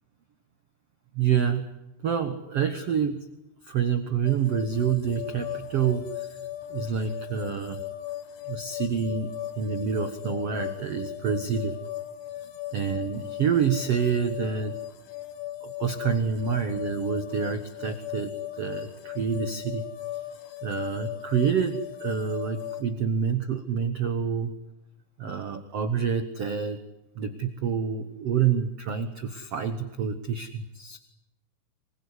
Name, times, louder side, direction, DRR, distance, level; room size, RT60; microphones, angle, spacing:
voice 1, 1.1-1.6 2.0-3.3 3.6-6.4 6.7-7.8 8.5-11.8 12.7-14.8 15.6-19.8 20.6-24.5 25.2-26.8 27.2-31.0, right 7 dB, 85° right, 8 dB, 1.3 m, -27 dB
sound 1, 4.3-22.8, left 13 dB, 70° left, 3.9 m, -37 dB
25.0 x 21.5 x 9.9 m, 0.87 s
omnidirectional pair, 5.0 m